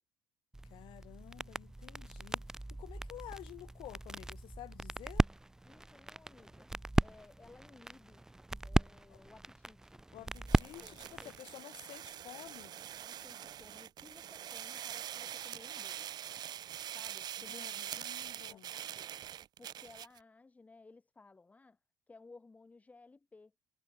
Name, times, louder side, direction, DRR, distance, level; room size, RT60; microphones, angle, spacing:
sound 1, 0.5-11.4, right 1 dB, 5° right, 0.5 m, -37 dB
voice 1, 0.6-2.4 2.7-5.3 9.1-9.2 10.1-12.8 17.4-18.7, left 15 dB, 65° left, 0.9 m, -51 dB
voice 2, 5.6-6.7 7.0-8.2 8.6-11.3 13.0-16.1 16.9-17.7 18.5-18.6 18.9-19.2 19.6-21.8 22.1-23.5, left 3 dB, 15° left, 2.5 m, -58 dB
sound 2, 10.3-20.2, right 11 dB, 50° right, 1.4 m, -44 dB
cardioid pair, 130°, 9 cm